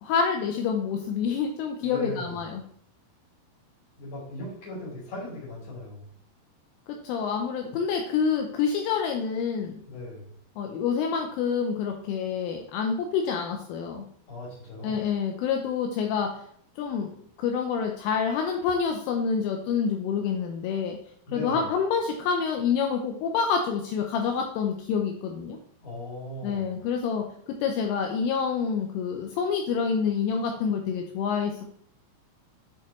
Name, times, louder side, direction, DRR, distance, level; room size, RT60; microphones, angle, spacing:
voice 1, 0.0-2.6 7.0-9.8 10.6-14.0 14.8-16.3 16.8-17.1 17.4-21.0 21.3-25.6 26.4-27.2 27.6-31.7, left 6 dB, 80° left, 3 dB, 3.2 m, -27 dB
voice 2, 1.8-2.4 4.0-6.1 9.9-10.3 14.3-15.1 21.3-21.7 25.8-26.8, left 1 dB, 30° left, -4 dB, 3.2 m, -38 dB
10.5 x 4.6 x 3.1 m, 0.62 s
omnidirectional pair, 5.9 m